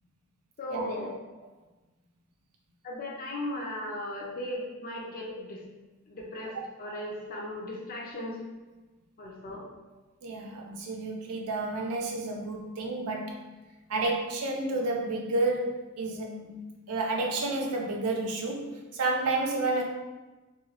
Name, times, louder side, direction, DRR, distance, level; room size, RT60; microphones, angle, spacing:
voice 1, 0.6-1.1 2.8-5.6 6.1-8.4 9.2-9.6, left 1 dB, 40° left, -3 dB, 0.4 m, -37 dB
voice 2, 10.2-13.3 13.9-16.6 16.9-19.8, right 2 dB, 85° right, 1 dB, 0.5 m, -30 dB
3.0 x 2.3 x 2.8 m, 1.2 s
head